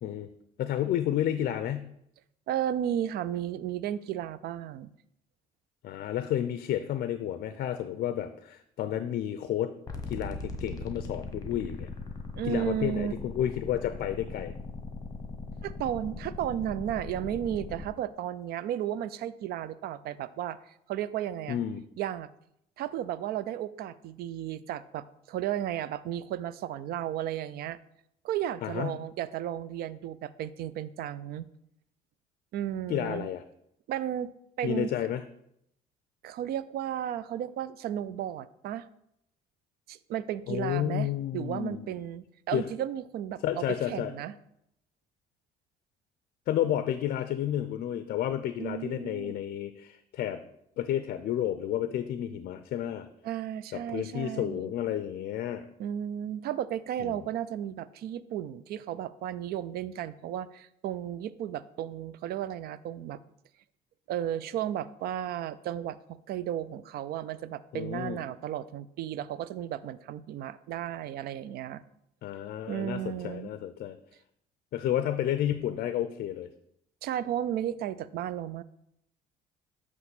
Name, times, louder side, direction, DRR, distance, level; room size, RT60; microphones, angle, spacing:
voice 1, 0.6-1.9 5.8-9.7 10.1-11.9 12.4-14.5 21.5-21.8 28.6-29.0 32.9-33.4 34.6-35.2 40.5-41.9 42.5-42.7 43.4-44.1 46.5-50.4 50.8-53.1 53.9-55.7 57.0-57.2 67.7-68.2 72.2-74.0 74.7-76.5, left 11 dB, 60° left, 11 dB, 0.4 m, -31 dB
voice 2, 2.5-4.9 12.4-13.1 15.6-21.6 22.0-22.3 22.8-27.8 28.2-31.5 32.5-33.3 33.9-34.3 34.6-34.9 36.2-38.9 39.9-43.4 43.9-44.3 48.6-49.3 53.2-54.7 55.8-63.2 64.1-71.8 72.7-73.5 77.0-78.6, right 11 dB, 65° right, 16 dB, 0.4 m, -34 dB
sound 1, 9.9-17.9, left 3 dB, 20° left, 1.1 m, -40 dB
7.6 x 3.1 x 6.0 m, 0.76 s
cardioid pair, 110°, 17 cm